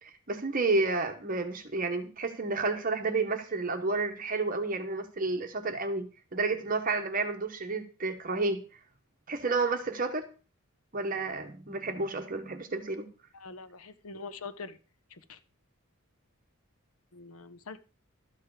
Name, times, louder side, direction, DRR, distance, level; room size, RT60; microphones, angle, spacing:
voice 1, 0.0-6.1 6.3-8.6 9.3-10.3 10.9-13.1, right 3 dB, 40° right, 6 dB, 1.1 m, -31 dB
voice 2, 13.3-14.8 15.1-15.4 17.1-17.8, left 4 dB, 80° left, 13 dB, 0.9 m, -44 dB
12.5 x 7.6 x 4.8 m, 0.35 s
head